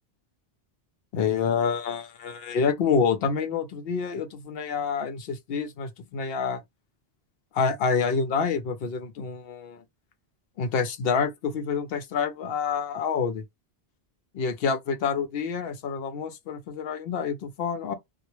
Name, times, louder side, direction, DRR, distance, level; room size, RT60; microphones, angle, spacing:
voice 1, 1.1-6.6 7.5-9.8 10.6-13.4 14.3-17.9, left 5 dB, 70° left, 0.8 m, -27 dB
2.2 x 2.1 x 2.9 m
omnidirectional pair, 1.1 m